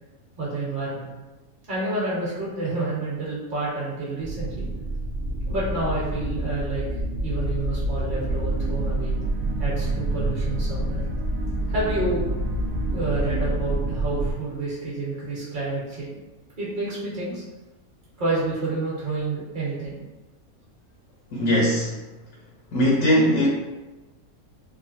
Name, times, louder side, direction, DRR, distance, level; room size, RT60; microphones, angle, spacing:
voice 1, 0.4-1.1 1.7-4.7 5.5-6.8 7.2-9.1 9.6-11.0 11.7-12.3 12.9-16.1 16.6-17.4 18.2-20.0, right 2 dB, 35° right, -8 dB, 1.1 m, -29 dB
sound 1, 4.2-14.3, right 1 dB, 65° right, 0.6 m, -27 dB
voice 2, 21.3-21.9 22.7-23.5, equal, 75° left, -4 dB, 1.0 m, -20 dB
3.2 x 2.1 x 2.5 m, 1.1 s
omnidirectional pair, 1.5 m